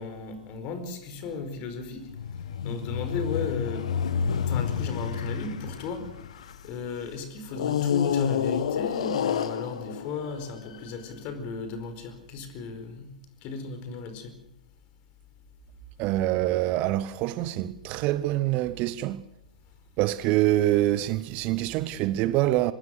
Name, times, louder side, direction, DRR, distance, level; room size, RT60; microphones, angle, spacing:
voice 1, 0.0-2.0 2.6-3.8 4.5-6.0 6.6-13.1 13.4-14.3, left 4 dB, 35° left, 4.8 m, -35 dB
sound 1, 2.1-6.8 7.5-10.9, left 7 dB, 55° left, 1.9 m, -29 dB
voice 2, 16.0-19.2 20.0-22.7, right 15 dB, 30° right, 0.9 m, -25 dB
25.0 x 20.5 x 6.7 m
figure-of-eight pair, 110°, 4 cm